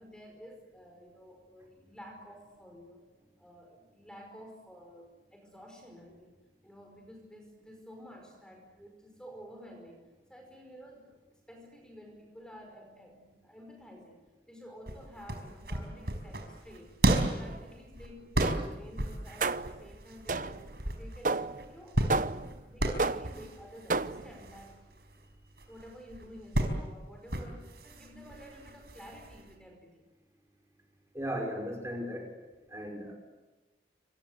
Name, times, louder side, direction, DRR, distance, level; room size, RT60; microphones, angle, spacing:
voice 1, 0.0-3.0 3.4-6.4 6.6-10.0 10.3-11.2 11.5-14.2 14.5-16.9 17.3-24.9 25.7-30.0, equal, 5° left, 2 dB, 5.1 m, -51 dB
sound 1, 14.9-29.5, right 1 dB, 65° right, 4.8 m, -34 dB
sound 2, 17.1-17.6 18.4-18.8 19.4-19.8 20.3-20.8 21.3-21.7 22.1-22.6 23.0-23.5 23.9-24.4, right 3 dB, 50° right, 0.8 m, -32 dB
voice 2, 31.1-32.3 32.7-33.1, equal, 15° right, 1 dB, 5.5 m, -36 dB
27.5 x 26.5 x 8.2 m, 1.2 s
head